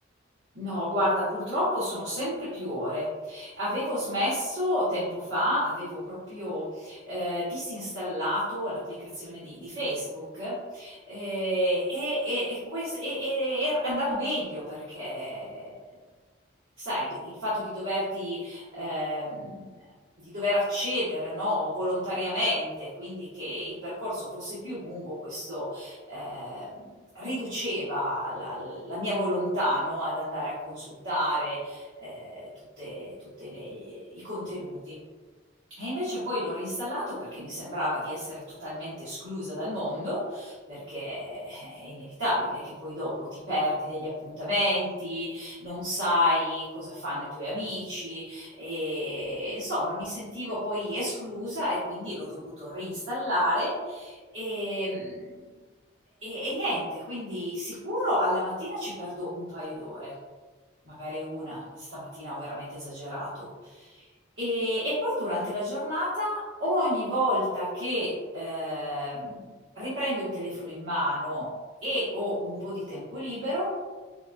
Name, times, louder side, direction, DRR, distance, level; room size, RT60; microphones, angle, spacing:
voice 1, 0.5-15.8 16.8-19.7 20.2-26.9 27.1-32.5 32.8-35.0 35.8-55.3 56.2-60.1 60.8-64.0 64.4-69.4 69.7-71.5 71.8-73.8, equal, 85° right, -11 dB, 1.3 m, -31 dB
5.0 x 2.3 x 2.6 m, 1.4 s
head